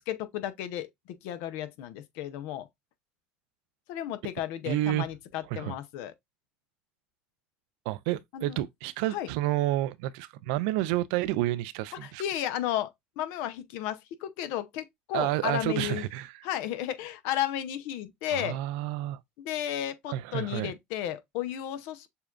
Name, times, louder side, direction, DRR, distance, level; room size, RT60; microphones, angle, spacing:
voice 1, 0.0-2.7 3.9-6.1 8.3-8.6 9.1-9.3 12.0-12.9 13.2-16.0 16.4-18.6 19.4-22.1, left 11 dB, 75° left, 0.6 m, -33 dB
voice 2, 4.6-5.1 5.5-5.7 7.9-12.2 15.1-16.4 18.3-19.2 20.1-20.7, right 15 dB, 80° right, 0.4 m, -30 dB
6.7 x 2.3 x 2.4 m
hypercardioid pair, 75°, 4 cm